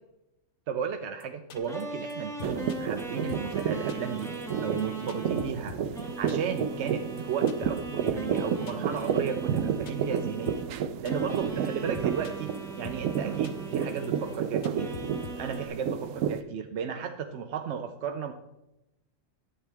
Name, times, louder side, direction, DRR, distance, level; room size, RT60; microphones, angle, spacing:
voice 1, 0.7-4.3 4.6-5.8 6.2-10.5 11.0-15.0 15.4-18.3, right 7 dB, 65° right, 5 dB, 0.8 m, -34 dB
sound 1, 1.2-1.3 1.5-1.8 2.1-2.2 2.4-3.0 3.3-3.6 3.9-4.5 4.8-4.9 5.1-6.0 6.3-6.6 6.9-7.0 7.2-7.3 7.5-7.8 8.1-8.4 8.7-9.3 9.6-10.2 10.4-10.8 11.0-11.4 11.6-11.7 11.9-12.6 12.8-13.2 13.4-14.1 14.3-14.4 14.6-15.6, left 7 dB, 65° left, 1.1 m, -44 dB
sound 2, 1.5-5.5 5.9-10.8 11.1-14.4 14.7-15.7, right 1 dB, ahead, 1.5 m, -40 dB
sound 3, 2.4-16.4, right 8 dB, 90° right, 1.0 m, -31 dB
11.0 x 8.0 x 3.4 m, 0.93 s
omnidirectional pair, 1.4 m